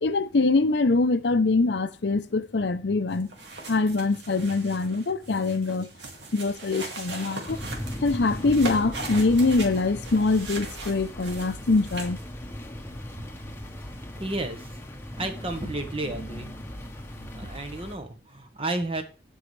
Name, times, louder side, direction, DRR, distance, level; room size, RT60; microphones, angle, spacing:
voice 1, 0.0-3.3 3.7-5.9 6.3-7.6 8.0-12.2, left 3 dB, 75° left, 0.7 m, -24 dB
sound 1, 3.1-12.2, right 3 dB, 75° right, 2.3 m, -39 dB
sound 2, 7.5-18.0, left 1 dB, 15° left, 1.0 m, -38 dB
voice 2, 14.2-14.8 15.2-16.5 17.3-19.0, right 2 dB, 30° right, 1.2 m, -32 dB
15.5 x 5.5 x 3.3 m
head